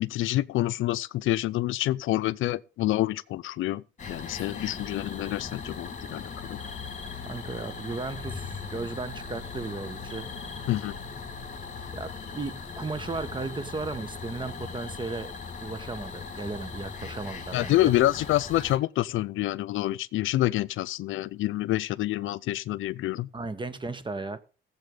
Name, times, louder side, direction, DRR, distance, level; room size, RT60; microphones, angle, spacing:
voice 1, 0.0-6.6 10.7-11.0 17.5-23.3, left 15 dB, 80° left, 0.5 m, -27 dB
sound 1, 4.0-18.8, left 5 dB, 40° left, 1.9 m, -39 dB
voice 2, 7.2-10.3 11.9-15.3 15.6-17.9 23.3-24.4, right 3 dB, 25° right, 1.1 m, -35 dB
15.5 x 7.6 x 3.8 m
cardioid pair, 90°, 20 cm